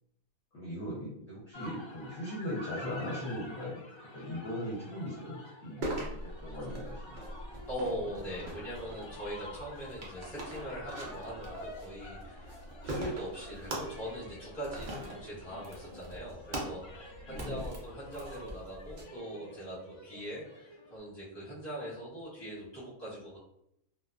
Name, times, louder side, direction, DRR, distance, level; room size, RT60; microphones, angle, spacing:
voice 1, 0.5-3.8 4.1-7.3 15.1-15.2 17.3-17.6, left 1 dB, 55° left, -8 dB, 0.9 m, -39 dB
sound 1, 1.5-21.0, left 1 dB, 40° left, 0.4 m, -49 dB
sound 2, 5.8-19.0, right 1 dB, 70° right, 0.4 m, -42 dB
voice 2, 7.7-12.6 12.8-23.4, equal, 20° left, -9 dB, 1.1 m, -41 dB
2.4 x 2.2 x 2.3 m, 0.76 s
omnidirectional pair, 1.5 m